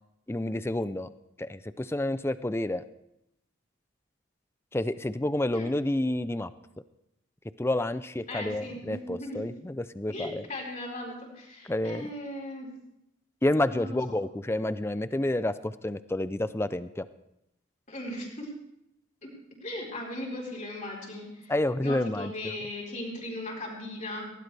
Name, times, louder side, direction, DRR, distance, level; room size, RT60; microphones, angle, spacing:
voice 1, 0.3-1.1 1.4-2.8 4.7-6.5 7.6-10.5 11.6-12.1 13.4-17.1 21.5-22.3, left 1 dB, 10° left, 14 dB, 0.4 m, -29 dB
voice 2, 8.3-9.4 10.1-12.7 13.7-13.9 17.9-18.5 19.2-19.3 19.6-21.5 21.8-24.3, left 1 dB, 35° left, -1 dB, 4.2 m, -38 dB
19.0 x 16.5 x 3.4 m, 0.83 s
head